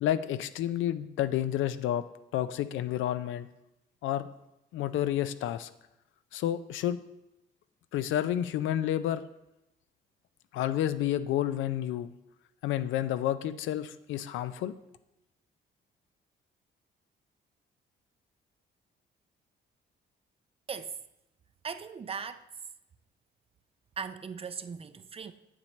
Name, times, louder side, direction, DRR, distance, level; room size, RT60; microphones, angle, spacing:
voice 1, 0.0-3.5 4.0-4.3 4.7-5.7 6.3-7.0 7.9-9.3 10.5-12.1 12.6-14.7, left 11 dB, 80° left, 0.4 m, -30 dB
voice 2, 20.7-21.0 21.6-22.4 24.0-25.3, right 6 dB, 30° right, 0.4 m, -38 dB
7.7 x 7.4 x 3.1 m
cardioid pair, 90°, 20 cm